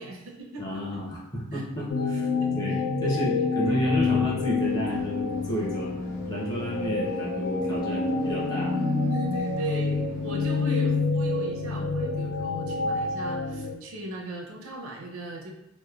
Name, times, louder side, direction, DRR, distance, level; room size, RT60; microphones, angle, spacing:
voice 1, 0.0-1.0 1.5-1.6 2.4-2.6 3.0-3.7 9.1-15.5, right 2 dB, 75° right, 1 dB, 0.5 m, -38 dB
voice 2, 0.6-2.3 2.5-8.7 10.3-10.6, right 1 dB, 20° left, -5 dB, 0.7 m, -32 dB
sound 1, 1.9-13.8, left 4 dB, 80° left, 0.4 m, -27 dB
sound 2, 4.5-11.0, left 1 dB, 65° left, 0.8 m, -47 dB
2.9 x 2.0 x 2.3 m, 0.89 s
head